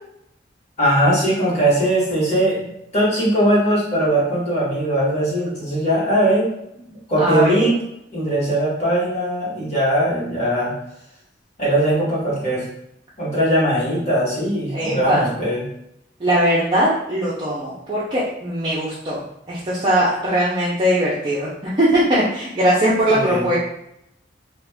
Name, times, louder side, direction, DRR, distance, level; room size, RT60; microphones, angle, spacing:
voice 1, 0.8-6.5 7.1-7.8 8.1-10.7 11.6-12.6 13.2-15.6 23.1-23.4, right 1 dB, 40° left, -7 dB, 1.3 m, -20 dB
voice 2, 7.2-7.7 14.7-15.3 16.2-23.6, right 1 dB, 30° right, -8 dB, 0.5 m, -20 dB
2.4 x 2.4 x 3.5 m, 0.79 s
head